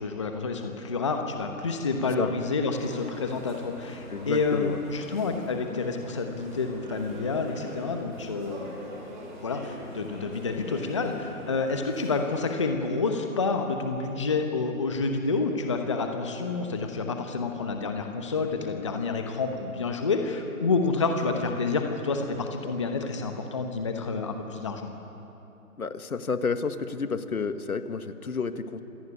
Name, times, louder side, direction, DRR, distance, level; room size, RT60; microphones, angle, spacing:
voice 1, 0.0-8.9 9.4-24.9, left 4 dB, 20° left, 5 dB, 1.0 m, -29 dB
sound 1, 2.7-12.5, right 1 dB, 30° right, 6.3 m, -44 dB
voice 2, 4.1-4.8 25.8-28.8, left 5 dB, 70° left, 10 dB, 1.7 m, -30 dB
26.5 x 17.0 x 9.7 m, 2.9 s
hypercardioid pair, 165°, 44 cm